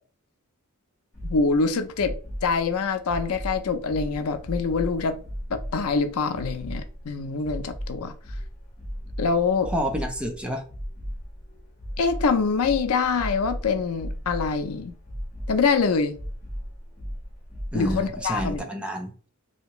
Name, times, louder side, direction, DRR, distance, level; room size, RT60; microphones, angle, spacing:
sound 1, 1.1-18.6, equal, 35° left, 1.2 m, -36 dB
voice 1, 1.2-2.2 2.4-5.2 5.5-8.1 9.2-9.7 12.0-14.9 15.5-16.2 17.7-18.6, left 4 dB, 90° left, 0.5 m, -25 dB
voice 2, 9.7-10.6 17.7-19.3, equal, 5° right, 0.5 m, -29 dB
3.3 x 2.8 x 2.9 m
head